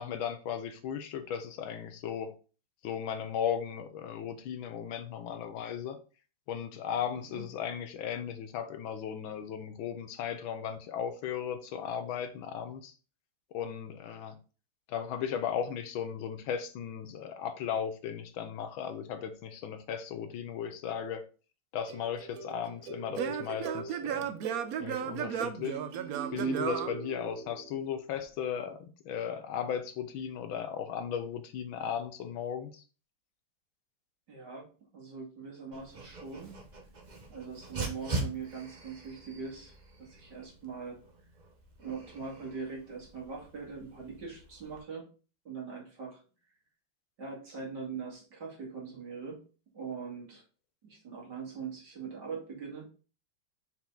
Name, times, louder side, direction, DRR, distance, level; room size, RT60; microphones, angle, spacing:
voice 1, 0.0-2.3 2.8-6.0 6.5-12.9 13.5-14.4 14.9-21.3 21.7-24.3 24.8-25.8 26.3-32.8, left 8 dB, 75° left, 1.4 m, -36 dB
Singing / Plucked string instrument, 21.9-27.7, right 7 dB, 75° right, 0.8 m, -35 dB
voice 2, 34.3-36.5 37.3-41.0 41.8-45.0 45.4-46.2 47.2-49.4 49.7-50.4 50.8-52.9, right 5 dB, 55° right, 2.7 m, -42 dB
Dog, 35.7-44.8, right 2 dB, 40° right, 0.6 m, -42 dB
5.7 x 4.5 x 3.8 m
omnidirectional pair, 2.3 m